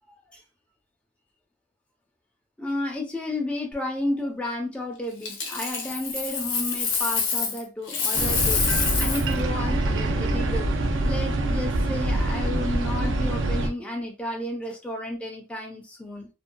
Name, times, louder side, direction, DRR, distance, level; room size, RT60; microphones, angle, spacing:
voice 1, 2.6-16.3, left 1 dB, 5° left, 0.5 m, -32 dB
Coin (dropping), 5.2-7.6 7.9-9.3 12.2-12.4, left 5 dB, 80° left, 0.7 m, -27 dB
sound 1, 8.1-13.7, right 2 dB, 70° right, 0.4 m, -25 dB
2.6 x 2.2 x 2.2 m
head